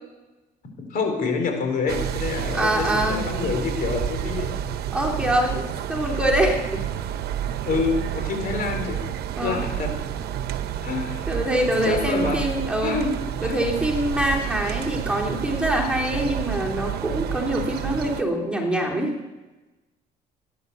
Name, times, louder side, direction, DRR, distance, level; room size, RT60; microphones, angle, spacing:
voice 1, 0.9-4.5 7.6-9.0 9.4-10.0 10.8-11.3 11.8-12.5 12.8-13.5, left 4 dB, 55° left, 4 dB, 3.9 m, -27 dB
sound 1, 1.9-18.2, right 10 dB, 70° right, 1.0 m, -29 dB
voice 2, 2.5-3.2 4.9-5.6 5.9-6.8 9.4-9.6 11.3-13.0 13.4-19.1, right 1 dB, 5° right, 0 dB, 3.2 m, -24 dB
17.5 x 10.0 x 6.9 m, 1.1 s
cardioid pair, 110°, 17 cm